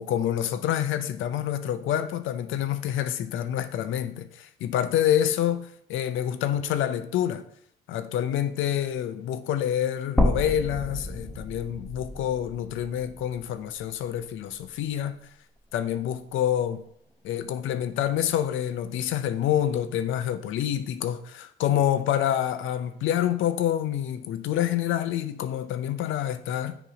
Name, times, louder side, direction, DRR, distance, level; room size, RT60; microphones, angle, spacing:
voice 1, 0.0-7.4 7.9-15.2 15.7-16.8 17.2-26.8, left 10 dB, 80° left, 0.5 m, -27 dB
sound 1, 10.2-14.3 14.7-14.8 16.2-16.3, left 1 dB, 5° left, 0.8 m, -30 dB
6.9 x 3.0 x 4.9 m
cardioid pair, 90°, 20 cm